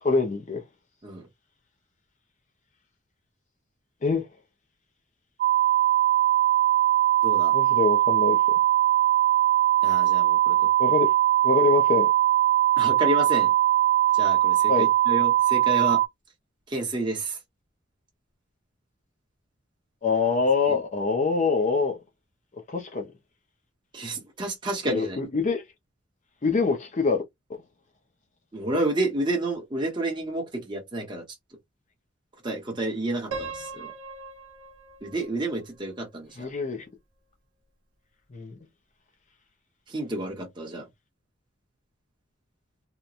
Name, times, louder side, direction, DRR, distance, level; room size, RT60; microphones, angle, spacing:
voice 1, 0.0-0.6 4.0-4.3 7.5-8.4 10.8-11.1 11.4-12.1 14.7-14.8 20.0-22.0 22.7-23.1 24.9-25.6 26.4-27.2 27.5-27.6 36.4-36.8 38.3-38.5, left 4 dB, 35° left, 0.5 m, -25 dB
sound 1, 5.4-16.1, right 13 dB, 45° right, 0.3 m, -21 dB
voice 2, 7.2-7.5 9.8-10.7 12.8-13.5 14.1-16.0 16.7-17.4 20.6-20.8 23.9-25.2 28.5-31.2 32.4-33.9 35.0-36.5 39.9-40.9, right 1 dB, 25° right, 0.8 m, -30 dB
Piano, 33.3-36.3, right 3 dB, 90° right, 0.8 m, -40 dB
2.9 x 2.1 x 2.4 m
head